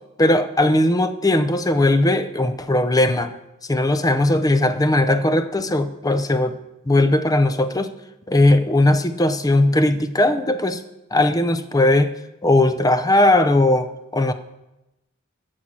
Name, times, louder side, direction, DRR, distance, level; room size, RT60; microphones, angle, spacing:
voice 1, 0.2-3.3 3.7-6.6 6.9-7.9 8.3-10.8 11.1-12.1 12.4-14.3, left 1 dB, 15° left, 10 dB, 0.6 m, -18 dB
13.5 x 4.7 x 7.4 m, 0.95 s
head